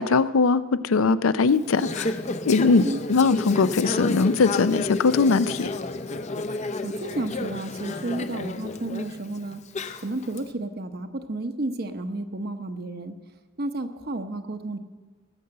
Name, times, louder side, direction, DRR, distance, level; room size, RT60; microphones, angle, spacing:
voice 1, 0.0-2.1 2.5-5.7, left 4 dB, 85° left, 15 dB, 0.5 m, -21 dB
Conversation / Chatter, 1.5-10.4, left 2 dB, 35° left, 0.6 m, -32 dB
voice 2, 2.6-3.0 6.8-9.6 10.0-13.1 13.6-14.8, right 2 dB, 50° right, 7 dB, 0.9 m, -32 dB
19.0 x 6.7 x 7.7 m, 1.3 s
head